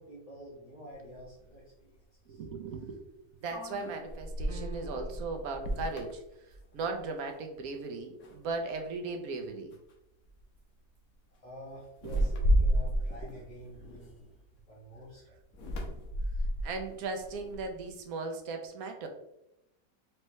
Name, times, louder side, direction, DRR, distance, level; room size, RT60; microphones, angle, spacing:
voice 1, 0.0-1.9 2.3-2.4 11.3-14.3 14.7-15.3, equal, 25° left, -10 dB, 1.2 m, -48 dB
sound 1, 1.2-1.3 3.5-7.1 7.4-7.8 8.2-8.9 9.7-9.9 10.2-10.6 11.9-14.6 15.5-17.9, equal, 60° left, 1.2 m, -32 dB
voice 2, 2.3-9.7 12.0-12.2 13.2-13.3 16.6-19.1, right 3 dB, 65° right, 4 dB, 1.0 m, -38 dB
sound 2, 4.5-5.5, right 5 dB, 90° right, 1.6 m, -48 dB
4.5 x 3.2 x 3.1 m, 0.87 s
omnidirectional pair, 1.9 m